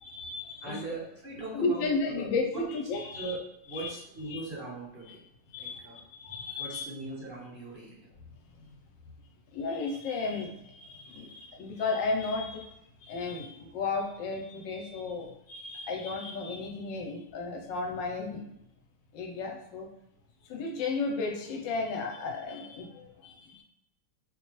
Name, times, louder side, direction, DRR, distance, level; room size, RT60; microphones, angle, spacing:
voice 1, 0.0-0.8 1.5-3.3 3.7-3.9 4.3-4.4 5.5-6.8 9.5-12.7 13.0-18.4 19.1-19.9 20.5-23.6, left 3 dB, 75° left, 1 dB, 1.3 m, -34 dB
voice 2, 0.6-2.6 3.1-3.4 3.6-5.2 5.5-6.0 6.6-8.1, right 2 dB, 35° right, -6 dB, 1.2 m, -40 dB
4.3 x 2.3 x 3.0 m, 0.80 s
omnidirectional pair, 2.0 m